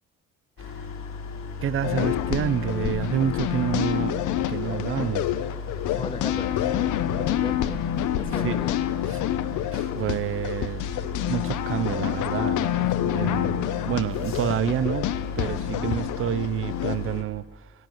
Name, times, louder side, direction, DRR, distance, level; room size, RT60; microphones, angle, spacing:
sound 1, 0.6-17.2, left 5 dB, 65° left, 1.3 m, -35 dB
voice 1, 1.6-4.2 4.5-5.3 8.3-8.6 9.1-9.2 9.7-11.0 11.3-15.1 15.4-17.7, right 10 dB, 45° right, 0.4 m, -28 dB
sound 2, 1.8-17.0, left 12 dB, 80° left, 0.5 m, -28 dB
voice 2, 5.9-7.8 8.2-8.8 13.7-14.0, left 3 dB, 15° left, 0.5 m, -37 dB
7.7 x 7.7 x 7.1 m
cardioid pair, 90°, 30 cm